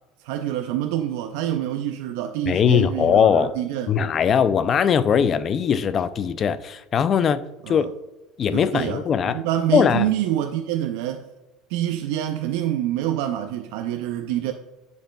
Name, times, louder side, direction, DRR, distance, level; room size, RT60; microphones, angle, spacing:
voice 1, 0.2-3.9 7.6-7.9 8.5-11.3 11.7-14.5, right 12 dB, 80° right, 0.4 m, -26 dB
voice 2, 2.5-3.5 3.9-7.9 8.4-9.4 9.7-10.1, left 7 dB, 30° left, 0.3 m, -20 dB
9.9 x 5.3 x 2.2 m
cardioid pair, 150°, 0 cm